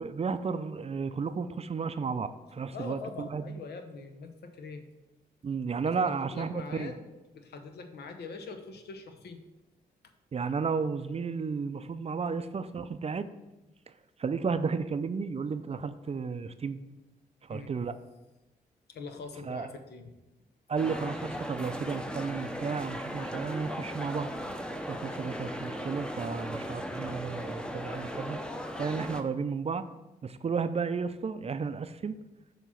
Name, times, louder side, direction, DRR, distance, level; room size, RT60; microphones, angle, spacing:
voice 1, 0.0-3.6 5.4-6.9 10.3-13.3 14.2-16.8 17.5-17.9 19.5-19.7 20.7-24.3 24.9-28.4 28.8-29.8 30.2-32.2, right 5 dB, 35° right, 11 dB, 0.4 m, -33 dB
voice 2, 2.7-4.8 5.8-7.0 7.3-9.4 17.5-17.7 18.9-20.1, left 4 dB, 75° left, 6 dB, 0.7 m, -43 dB
sound 1, 20.8-29.2, equal, 5° left, 0.7 m, -37 dB
7.0 x 3.0 x 5.7 m, 1.0 s
supercardioid pair, 50°, 17 cm